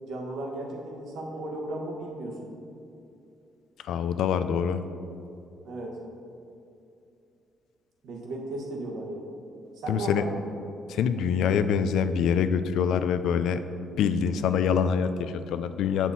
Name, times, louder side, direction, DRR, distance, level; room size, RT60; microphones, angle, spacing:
voice 1, 0.0-2.5 5.6-6.0 8.0-9.3 9.8-10.4, right 1 dB, 70° right, 0 dB, 1.3 m, -35 dB
voice 2, 3.9-4.8 9.9-10.3 10.9-13.6 14.0-16.1, left 7 dB, 80° left, 11 dB, 0.3 m, -25 dB
7.3 x 6.0 x 4.1 m, 2.6 s
cardioid pair, 140°, 0 cm